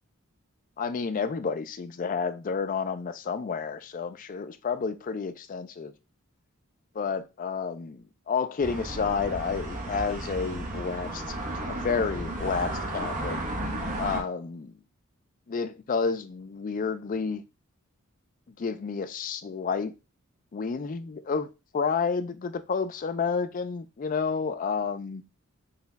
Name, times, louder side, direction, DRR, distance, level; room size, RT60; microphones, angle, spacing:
voice 1, 0.8-5.9 6.9-11.2 11.7-13.4 14.0-14.7 15.5-17.4 18.6-19.9 20.5-21.5 21.7-25.2, left 5 dB, 40° left, 0.3 m, -30 dB
sound 1, 8.6-14.2, right 1 dB, 35° right, 1.0 m, -33 dB
4.0 x 2.3 x 3.9 m
head